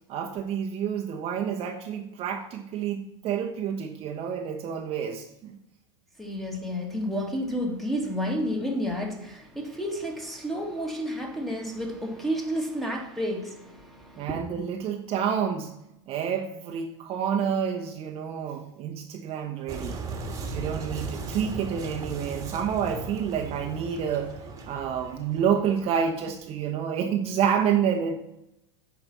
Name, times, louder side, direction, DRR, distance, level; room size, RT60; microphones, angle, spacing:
voice 1, 0.0-5.6 14.2-15.7 16.1-20.0 20.5-24.4 24.6-28.2, right 8 dB, 40° right, 3 dB, 1.0 m, -28 dB
voice 2, 6.2-14.4, equal, ahead, 1 dB, 2.0 m, -31 dB
sound 1, 19.7-26.3, right 3 dB, 20° right, 1.7 m, -37 dB
8.9 x 5.0 x 6.0 m, 0.85 s
supercardioid pair, 120°, 16 cm